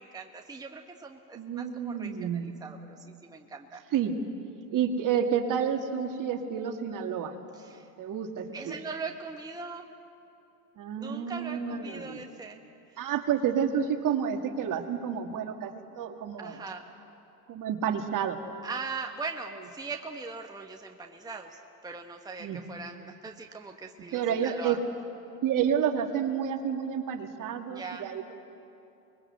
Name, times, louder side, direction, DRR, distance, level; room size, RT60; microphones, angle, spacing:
voice 1, 0.0-3.8 7.6-7.9 8.5-9.9 11.0-12.6 16.4-16.9 18.6-24.8 27.7-28.1, right 4 dB, 10° right, 3 dB, 1.3 m, -40 dB
voice 2, 1.3-2.4 3.9-4.1 4.7-7.3 8.0-8.7 10.8-12.2 13.0-16.6 17.5-18.4 22.4-22.6 24.1-24.8 25.4-28.3, right 8 dB, 40° right, 5 dB, 2.3 m, -30 dB
24.5 x 21.5 x 8.0 m, 2.7 s
hypercardioid pair, 95°, 48 cm